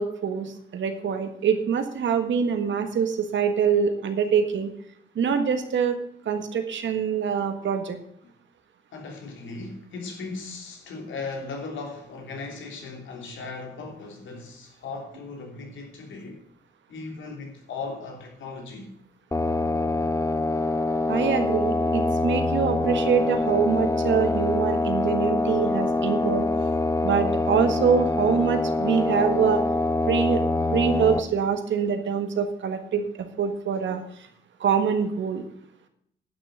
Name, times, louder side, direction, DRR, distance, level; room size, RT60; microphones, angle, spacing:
voice 1, 0.0-4.7 5.1-6.0 6.2-8.0 21.1-26.5 27.0-29.6 30.1-30.4 30.7-33.1 33.4-34.0 34.6-35.4, right 7 dB, 75° right, 1.7 m, -24 dB
voice 2, 8.9-16.4 16.9-18.9, left 3 dB, 80° left, 3.1 m, -37 dB
sound 1, 19.3-31.2, left 2 dB, 15° left, 1.0 m, -25 dB
11.0 x 6.3 x 8.1 m
cardioid pair, 65°, 19 cm